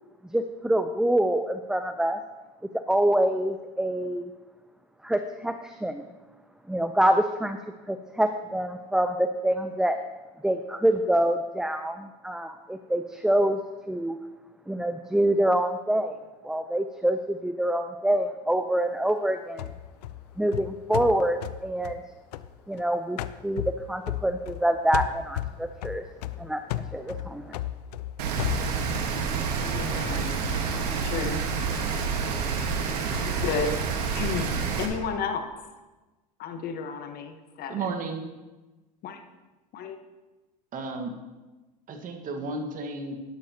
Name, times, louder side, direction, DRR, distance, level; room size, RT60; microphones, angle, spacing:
voice 1, 0.3-2.2 2.7-4.3 5.0-6.0 6.7-7.6 7.9-10.0 10.4-13.6 13.9-14.2 14.7-16.2 16.4-19.7 20.4-22.0 22.7-26.0 26.4-27.6, right 1 dB, 5° right, 8 dB, 0.5 m, -26 dB
sound 1, 19.6-22.8 23.2-24.7 24.9-29.1, left 13 dB, 80° left, 0.5 m, -34 dB
Rain, 28.2-34.9, right 5 dB, 80° right, 1.5 m, -28 dB
voice 2, 29.6-30.4 30.7-31.4 33.2-33.8 34.1-35.5 36.4-37.9 39.0-39.2 39.7-40.0, left 5 dB, 50° left, 7 dB, 1.2 m, -32 dB
voice 3, 37.7-38.2 40.7-41.1 41.9-43.1, right 3 dB, 40° right, 4 dB, 1.6 m, -33 dB
11.5 x 11.5 x 2.9 m, 1.2 s
hypercardioid pair, 90°, 20 cm